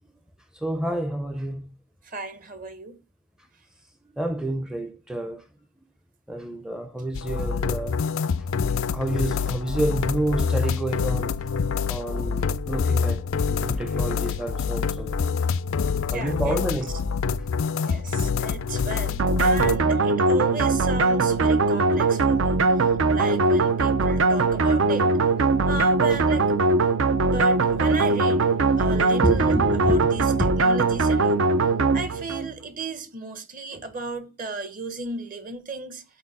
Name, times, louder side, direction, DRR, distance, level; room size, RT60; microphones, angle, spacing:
voice 1, 0.5-1.7 4.1-5.4 6.3-8.0 8.9-11.3 11.9-15.1 16.1-16.9 23.2-23.3 29.2-30.1 30.4-30.5, right 1 dB, 5° right, 0.5 m, -28 dB
voice 2, 2.0-3.0 13.6-14.2 16.1-16.6 17.8-25.1 25.7-26.5 27.2-28.5 28.8-29.6 29.8-31.4 31.9-36.0, right 3 dB, 40° right, 1.1 m, -35 dB
sound 1, 7.1-19.8, left 5 dB, 70° left, 0.4 m, -26 dB
sound 2, 19.2-32.5, right 3 dB, 65° right, 0.6 m, -21 dB
11.0 x 4.4 x 4.1 m
head